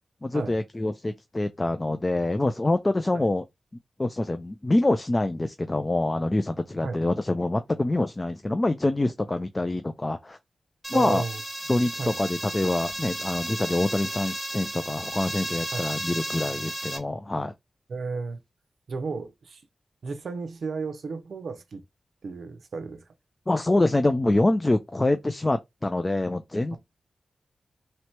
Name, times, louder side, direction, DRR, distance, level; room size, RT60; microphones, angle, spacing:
voice 1, 0.2-3.4 4.0-10.4 10.9-11.2 11.7-17.5 23.5-26.8, left 2 dB, 20° left, 0.4 m, -25 dB
sound 1, 10.8-17.0, equal, 10° right, 1.6 m, -34 dB
voice 2, 10.9-11.4 12.0-12.2 15.7-15.9 17.9-18.4 18.9-19.6 20.0-21.8 22.2-23.0 26.7-26.8, right 4 dB, 70° right, 0.7 m, -33 dB
3.1 x 2.9 x 4.4 m
wide cardioid pair, 140°, 0 cm